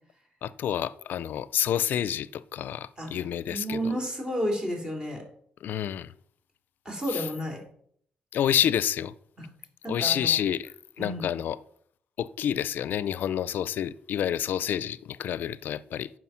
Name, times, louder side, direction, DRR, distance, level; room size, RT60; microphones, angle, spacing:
voice 1, 0.4-3.9 5.6-6.1 7.1-7.3 8.3-9.1 9.9-10.7 11.0-11.6 12.2-16.1, left 10 dB, 70° left, 0.5 m, -28 dB
voice 2, 3.5-5.2 6.8-7.6 9.4-9.5 9.8-10.3 11.0-11.3, equal, 20° right, 3.3 m, -31 dB
9.4 x 6.1 x 5.8 m
cardioid pair, 120°, 3 cm